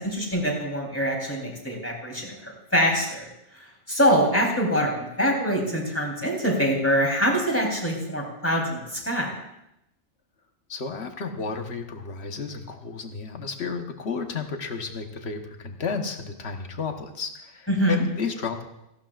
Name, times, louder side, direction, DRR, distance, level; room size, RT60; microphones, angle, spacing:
voice 1, 0.0-3.3 3.9-9.3 17.7-18.0, equal, 10° left, -2 dB, 3.5 m, -24 dB
voice 2, 10.7-18.6, left 5 dB, 60° left, 5 dB, 1.4 m, -32 dB
17.5 x 15.0 x 2.5 m, 0.86 s
omnidirectional pair, 1.2 m